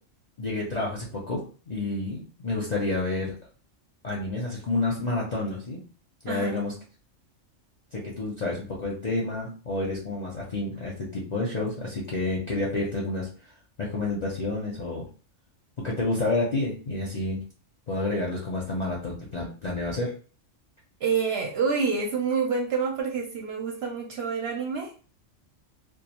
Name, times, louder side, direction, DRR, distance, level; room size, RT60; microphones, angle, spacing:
voice 1, 0.4-1.4 1.7-3.3 4.0-5.8 6.2-6.7 7.9-13.3 13.8-15.1 15.8-17.4 17.9-20.1, left 2 dB, 50° left, -4 dB, 0.5 m, -29 dB
voice 2, 6.3-6.6 21.0-24.9, right 5 dB, 60° right, 1 dB, 0.8 m, -27 dB
2.3 x 2.3 x 2.9 m, 0.38 s
omnidirectional pair, 1.3 m